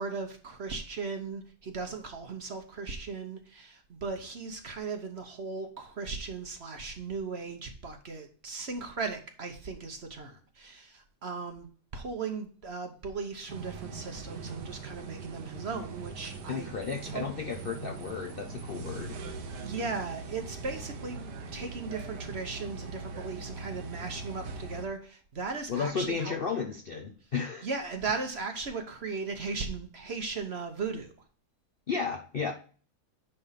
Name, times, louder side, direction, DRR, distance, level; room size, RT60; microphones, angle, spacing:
voice 1, 0.0-11.7 11.9-16.7 17.0-17.2 19.6-26.4 27.6-31.1, right 4 dB, 45° right, 6 dB, 1.0 m, -37 dB
sound 1, 13.5-24.9, right 4 dB, 90° right, 1.7 m, -41 dB
voice 2, 16.5-19.1 25.7-27.7 31.9-32.5, left 5 dB, 55° left, 3 dB, 0.6 m, -33 dB
9.8 x 3.5 x 5.7 m, 0.42 s
omnidirectional pair, 1.8 m